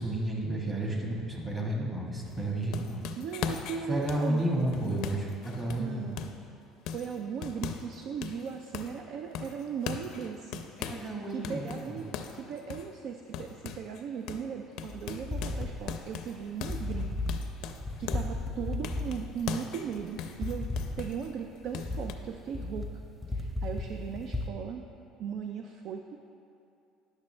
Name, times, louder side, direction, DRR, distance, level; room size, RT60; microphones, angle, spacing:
voice 1, 0.0-3.0 3.9-6.2 10.8-12.0, right 1 dB, 20° right, -2 dB, 1.4 m, -32 dB
sound 1, 2.3-6.5 6.9-8.0 8.2-9.0 9.4-11.1 11.4-14.0 14.3-14.5 14.8-18.4 18.8-21.3 21.7-22.2, left 8 dB, 70° left, 0.5 m, -40 dB
voice 2, 3.2-5.0 5.8-6.3 6.8-10.6 11.3-17.3 17.6-20.7 21.0-22.9 23.3-24.8 25.2-26.2, right 7 dB, 60° right, 4 dB, 0.4 m, -38 dB
Small Creature Scamper on Wall, 14.9-24.5, left 2 dB, 10° left, 0.7 m, -35 dB
10.5 x 6.1 x 3.2 m, 2.7 s
cardioid pair, 110°, 0 cm